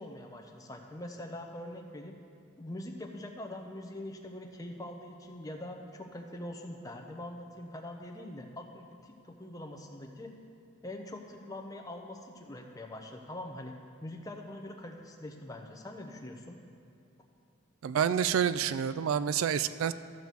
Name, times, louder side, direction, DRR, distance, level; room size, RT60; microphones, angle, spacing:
voice 1, 0.0-2.2 2.6-10.3 10.8-13.7 14.0-16.6, left 1 dB, 15° left, 3 dB, 0.7 m, -43 dB
voice 2, 17.8-19.9, right 8 dB, 80° right, 14 dB, 0.3 m, -28 dB
13.5 x 4.6 x 6.8 m, 2.6 s
head